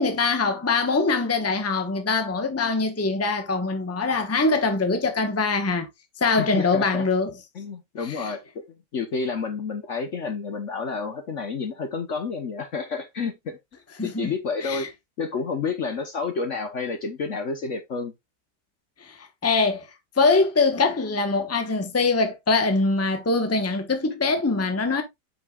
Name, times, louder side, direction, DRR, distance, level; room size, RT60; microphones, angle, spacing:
voice 1, 0.0-5.9 6.2-7.3 8.0-8.3 14.0-14.3 14.6-14.9 19.0-19.2 19.4-19.8 20.2-25.0, left 3 dB, 10° left, 0.9 m, -23 dB
voice 2, 6.4-7.1 7.5-13.6 14.0-14.9 15.2-18.1, left 5 dB, 50° left, 1.1 m, -30 dB
7.9 x 5.6 x 2.4 m
omnidirectional pair, 1.8 m